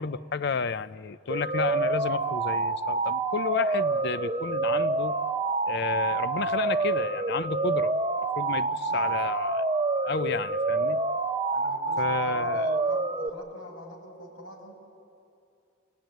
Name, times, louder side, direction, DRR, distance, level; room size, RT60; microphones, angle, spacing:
voice 1, 0.0-5.1 5.7-7.9 8.4-9.7 10.0-11.0 12.0-12.7, left 5 dB, 55° left, 15 dB, 0.5 m, -31 dB
sound 1, 1.3-13.3, right 3 dB, 25° right, 0.8 m, -27 dB
voice 2, 8.7-9.2 11.5-14.7, left 1 dB, 90° left, 1 dB, 6.5 m, -45 dB
26.0 x 19.0 x 9.2 m, 2.5 s
head